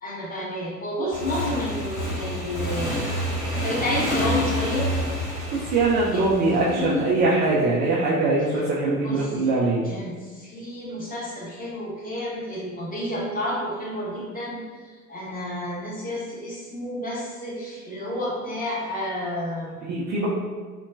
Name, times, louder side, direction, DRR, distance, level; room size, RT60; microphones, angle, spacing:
voice 1, 0.0-3.1 3.4-4.9 6.1-6.3 6.6-7.1 9.0-9.3 9.8-14.6 15.1-19.8, left 1 dB, 20° left, -4 dB, 0.9 m, -30 dB
Motorcycle / Engine, 1.1-7.5, equal, 40° left, 1.4 m, -29 dB
voice 2, 5.5-9.8 19.8-20.3, right 3 dB, 25° right, -5 dB, 0.3 m, -22 dB
3.8 x 2.1 x 2.4 m, 1.5 s
figure-of-eight pair, 70°, 44 cm